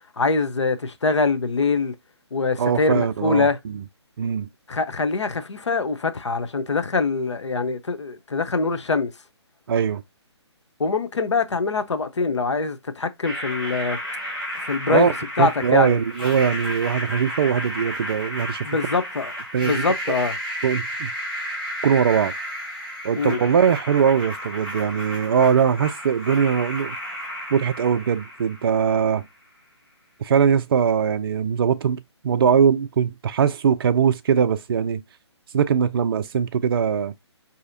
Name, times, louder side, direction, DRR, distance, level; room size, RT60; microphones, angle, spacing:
voice 1, 0.2-1.9 2.3-3.6 4.7-9.1 10.8-14.0 14.6-16.0 18.6-19.3 19.6-20.4 23.1-23.4, left 4 dB, 80° left, 0.6 m, -24 dB
voice 2, 2.6-3.8 4.2-4.5 9.7-10.0 14.9-15.1 15.4-18.7 19.5-19.7 20.6-21.1 21.8-22.3 23.0-27.0 27.5-29.2 30.2-35.0 35.5-37.1, right 7 dB, 55° right, 0.4 m, -21 dB
sound 1, 13.2-29.2, equal, 5° left, 2.2 m, -32 dB
4.9 x 2.8 x 2.5 m
figure-of-eight pair, 145°, 15 cm